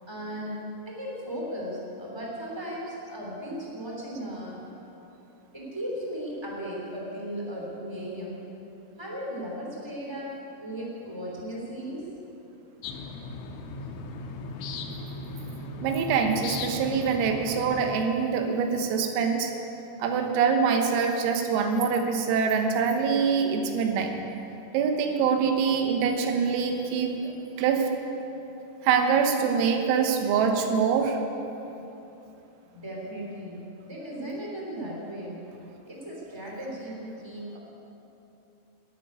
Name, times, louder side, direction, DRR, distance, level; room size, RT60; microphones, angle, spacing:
voice 1, 0.1-0.6 0.8-4.6 5.5-8.4 9.0-10.3 10.6-12.0 32.7-35.4 35.8-37.6, equal, 15° right, -3 dB, 0.8 m, -36 dB
sound 1, 12.8-18.0, left 3 dB, 80° left, 3.3 m, -37 dB
voice 2, 15.8-19.5 20.0-24.1 24.7-27.9 28.8-31.2, right 6 dB, 85° right, 4 dB, 3.9 m, -24 dB
14.0 x 8.5 x 9.6 m, 3.0 s
omnidirectional pair, 5.9 m